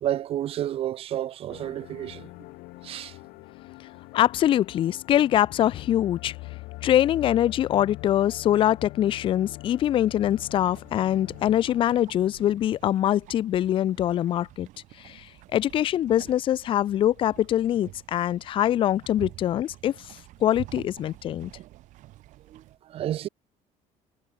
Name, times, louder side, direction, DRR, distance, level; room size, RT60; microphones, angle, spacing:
voice 1, 0.0-2.3 2.8-3.1 22.5-22.6 22.9-23.3, right 12 dB, 40° right, 1.7 m, -30 dB
sound 1, 1.5-13.4, left 23 dB, 85° left, 2.9 m, -43 dB
voice 2, 4.1-6.3 6.8-14.7 15.0-15.3 15.5-19.9 20.4-21.5, left 11 dB, 35° left, 0.7 m, -23 dB
sound 2, 10.2-22.8, right 16 dB, 55° right, 7.2 m, -48 dB
cardioid pair, 180°, 15 cm